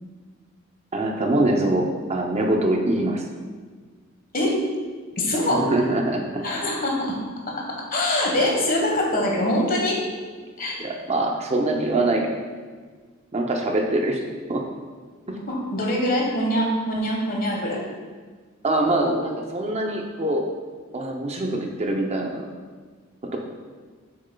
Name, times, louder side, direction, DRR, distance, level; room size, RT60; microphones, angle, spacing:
voice 1, 0.9-3.2 5.5-6.4 10.8-12.2 13.3-14.2 14.5-14.6 15.3-15.4 18.6-20.4 20.9-22.4, right 1 dB, 30° right, 1 dB, 0.6 m, -23 dB
voice 2, 5.2-5.7 6.4-7.2 7.5-10.0 10.6-10.8 15.5-17.8 19.0-19.1, left 1 dB, 45° left, -1 dB, 1.3 m, -24 dB
7.7 x 6.5 x 2.3 m, 1.5 s
head